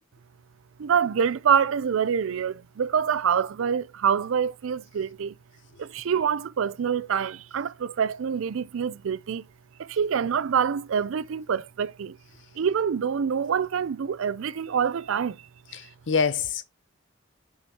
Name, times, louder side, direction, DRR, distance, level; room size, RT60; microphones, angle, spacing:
voice 1, 0.8-5.3 5.8-9.5 9.8-12.2 12.6-15.4, right 7 dB, 80° right, 0.4 m, -26 dB
voice 2, 15.7-16.6, left 5 dB, 65° left, 0.6 m, -26 dB
6.1 x 6.0 x 2.8 m
head